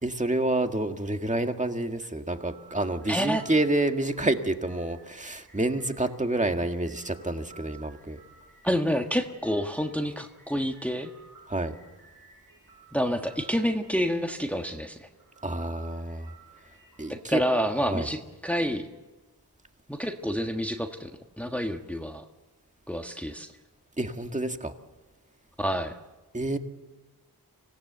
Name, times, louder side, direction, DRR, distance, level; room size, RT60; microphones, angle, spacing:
voice 1, 0.0-8.2 11.5-11.7 15.4-16.3 17.0-17.5 17.8-18.1 24.0-24.7 26.3-26.6, right 2 dB, 20° right, 6 dB, 1.8 m, -28 dB
sound 1, 2.2-17.1, right 4 dB, 55° right, 7.3 m, -55 dB
voice 2, 3.1-3.4 8.6-11.1 12.9-15.1 17.3-18.9 19.9-21.1 21.4-22.2 22.9-23.5 25.6-25.9, equal, 5° left, 4 dB, 1.5 m, -28 dB
25.5 x 17.5 x 7.9 m, 1.2 s
wide cardioid pair, 65°, 40 cm